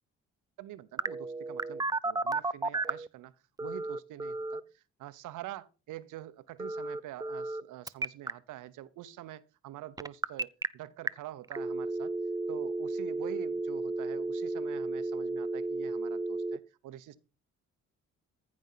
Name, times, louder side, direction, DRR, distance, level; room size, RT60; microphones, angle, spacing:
voice 1, 0.6-12.1 12.5-17.2, right 13 dB, 85° right, 1.0 m, -46 dB
Telephone, 1.0-3.1 3.6-4.6 6.6-7.6 7.9-8.3 10.0-10.7 11.1-11.2 11.5-16.6, right 2 dB, 15° right, 0.5 m, -33 dB
14.5 x 5.4 x 5.7 m
cardioid pair, 90°, 30 cm